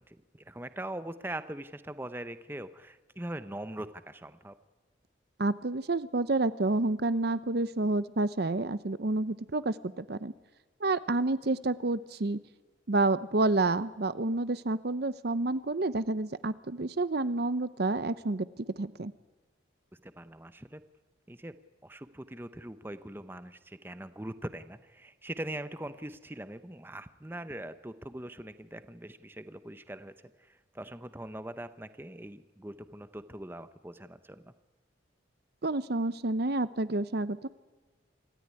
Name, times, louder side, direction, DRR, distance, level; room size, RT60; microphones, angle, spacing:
voice 1, 0.0-4.5 20.0-20.8 21.3-21.6 21.8-30.1 30.4-34.5, right 1 dB, 10° right, 11 dB, 0.7 m, -42 dB
voice 2, 5.4-10.3 10.8-12.4 12.9-18.5 18.8-19.1 35.6-37.5, right 2 dB, 55° right, 15 dB, 0.7 m, -29 dB
26.0 x 14.0 x 9.7 m, 1.2 s
head